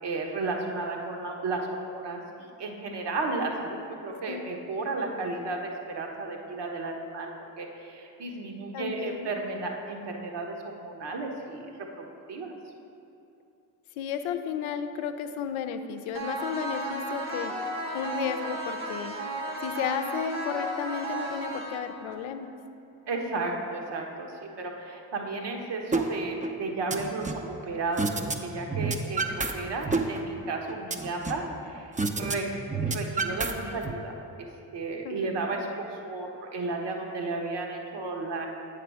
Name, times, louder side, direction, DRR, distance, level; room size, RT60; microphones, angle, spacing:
voice 1, 0.0-7.3 7.6-11.7 12.0-12.5 23.1-28.1 28.4-32.5 32.8-34.5 34.7-38.5, right 3 dB, 55° right, 1 dB, 1.2 m, -33 dB
voice 2, 8.7-9.3 14.0-17.5 17.9-19.2 19.6-22.6 35.0-35.3, left 7 dB, 70° left, 8 dB, 0.6 m, -33 dB
sound 1, 16.1-22.1, right 1 dB, 80° right, 1.0 m, -34 dB
sound 2, 25.9-26.0 26.4-27.5 28.0-28.4 28.6-29.5 29.8-31.5 32.0-32.3 32.6-33.9, right 3 dB, 15° right, 0.6 m, -29 dB
8.4 x 4.9 x 4.8 m, 2.8 s
hypercardioid pair, 40°, 49 cm